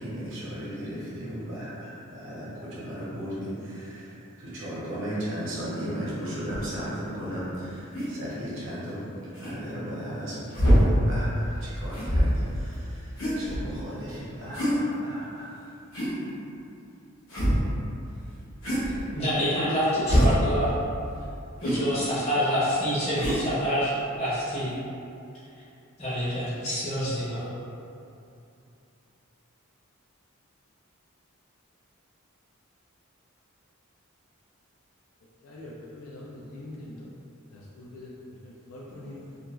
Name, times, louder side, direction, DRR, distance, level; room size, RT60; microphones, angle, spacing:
voice 1, 0.0-15.8 16.2-16.3 38.9-39.2, equal, 65° right, -8 dB, 0.8 m, -36 dB
sound 1, 6.5-6.6 7.9-8.1 9.3-9.6 10.5-10.9 11.9-12.5 13.2-13.8 14.5-14.8 15.9-16.2 17.3-17.7 18.6-19.0 20.1-20.4 21.6-21.8 23.2-23.4, equal, 70° left, 0.9 m, -23 dB
voice 2, 18.8-20.7 21.6-23.9 24.2-24.7 26.0-27.5, equal, 30° left, -13 dB, 0.7 m, -27 dB
voice 3, 35.4-37.1 37.5-39.4, left 1 dB, 90° left, -5 dB, 0.4 m, -43 dB
2.5 x 2.3 x 2.9 m, 2.6 s
head